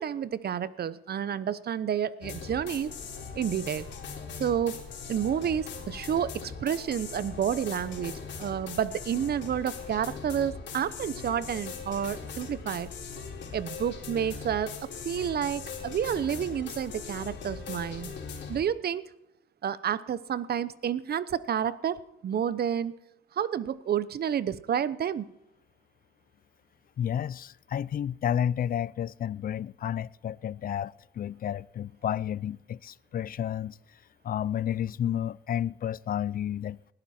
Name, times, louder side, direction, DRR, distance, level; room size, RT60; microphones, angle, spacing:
voice 1, 0.0-2.9 3.3-3.9 4.4-4.8 5.1-12.9 13.5-18.1 18.5-19.0 19.6-22.9 23.3-25.3, right 9 dB, 55° right, 0.9 m, -30 dB
sound 1, 2.2-18.6, left 5 dB, 65° left, 3.8 m, -40 dB
voice 2, 27.0-33.8 34.2-36.8, left 10 dB, 45° left, 0.5 m, -31 dB
19.5 x 12.0 x 4.4 m
cardioid pair, 90°, 20 cm